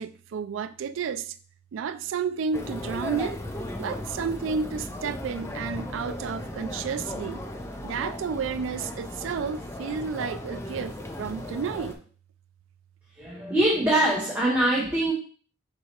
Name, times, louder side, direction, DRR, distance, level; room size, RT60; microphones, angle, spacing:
voice 1, 0.0-1.3 1.7-3.4 3.8-7.4 7.8-12.0, right 6 dB, 70° right, 0.3 m, -31 dB
sound 1, 2.5-12.0, left 1 dB, 15° left, 0.4 m, -36 dB
voice 2, 13.2-15.1, right 1 dB, 10° right, 0.8 m, -23 dB
4.0 x 2.8 x 4.3 m
head